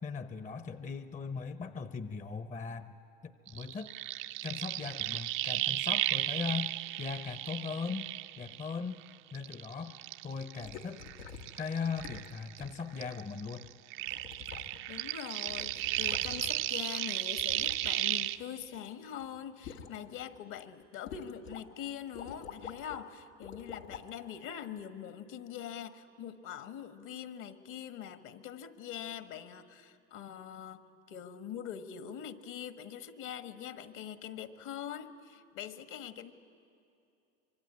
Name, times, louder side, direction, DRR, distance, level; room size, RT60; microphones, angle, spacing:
voice 1, 0.0-2.9 3.2-3.9 4.4-8.1 8.4-9.0 9.3-10.0 10.2-11.0 11.6-13.7, left 5 dB, 20° left, 12 dB, 0.9 m, -39 dB
sound 1, 3.5-9.0 9.3-12.7 13.0-18.4, right 16 dB, 60° right, 0.8 m, -35 dB
sound 2, 10.6-11.6 12.0-12.3 12.6-12.7 13.6-13.7 14.1-15.0 15.3-16.7 17.4-18.9 19.2-20.0 20.4-20.6 21.1-21.6 21.9-23.0 23.4-24.1 24.8-24.9, left 7 dB, 85° left, 2.1 m, -47 dB
voice 2, 14.9-36.3, left 9 dB, 55° left, 11 dB, 1.6 m, -43 dB
25.5 x 23.0 x 9.7 m, 2.7 s
hypercardioid pair, 90°, 38 cm